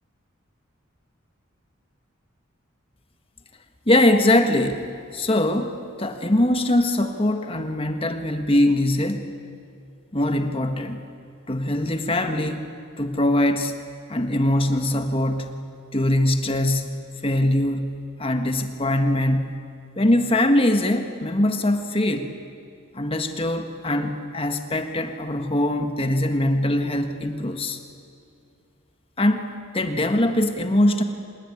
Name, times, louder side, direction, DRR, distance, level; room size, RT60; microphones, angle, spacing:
voice 1, 3.9-4.9 5.1-9.3 10.1-11.0 11.5-12.7 13.0-13.7 14.1-15.6 15.9-19.6 20.0-22.3 22.9-27.8 29.2-31.0, left 1 dB, 25° left, 6 dB, 1.5 m, -22 dB
27.0 x 19.0 x 9.9 m, 2.5 s
head